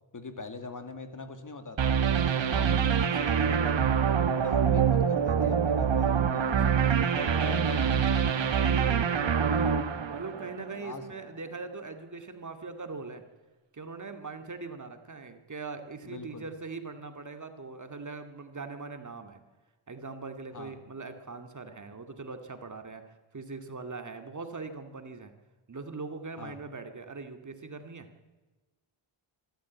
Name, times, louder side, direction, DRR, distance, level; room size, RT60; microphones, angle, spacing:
voice 1, 0.1-1.9 2.5-3.9 4.4-8.7 10.8-11.1 16.0-16.4 20.5-20.7 26.4-26.6, left 3 dB, 40° left, 8 dB, 2.2 m, -43 dB
sound 1, 1.8-10.8, right 7 dB, 60° right, 1.6 m, -25 dB
voice 2, 9.3-9.7 10.1-13.2 13.7-19.4 19.9-23.0 23.3-25.3 25.7-28.1, right 4 dB, 35° right, 7 dB, 2.2 m, -41 dB
25.0 x 13.0 x 8.6 m, 1.2 s
wide cardioid pair, 105°, 49 cm